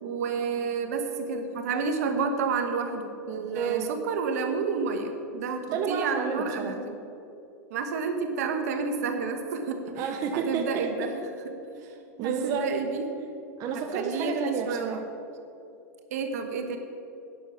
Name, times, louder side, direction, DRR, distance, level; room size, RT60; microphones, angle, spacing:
voice 1, 0.0-7.0 7.7-9.9 10.3-11.5 12.2-13.1 13.7-15.1 16.1-16.8, right 5 dB, 75° right, 6 dB, 1.3 m, -30 dB
voice 2, 3.5-3.9 5.7-6.8 10.0-11.1 11.7-12.7 13.6-15.0, right 6 dB, 45° right, 4 dB, 0.9 m, -31 dB
9.9 x 6.6 x 7.2 m, 2.7 s
hypercardioid pair, 110°, 9 cm